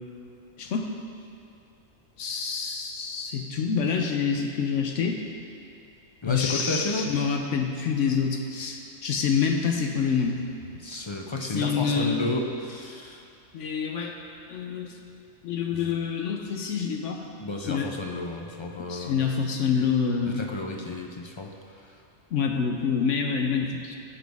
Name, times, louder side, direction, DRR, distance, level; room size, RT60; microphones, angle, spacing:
voice 1, 0.6-0.9 2.2-5.2 6.3-10.4 11.5-12.2 13.5-14.2 14.5-15.0 15.4-17.3 17.6-17.9 18.9-20.4 22.3-23.9, left 6 dB, 70° left, 3 dB, 1.0 m, -27 dB
voice 2, 6.2-7.1 10.8-13.2 15.7-16.0 17.4-19.2 20.3-21.5, left 2 dB, 50° left, 1 dB, 0.3 m, -32 dB
15.0 x 6.1 x 3.5 m, 2.6 s
omnidirectional pair, 1.3 m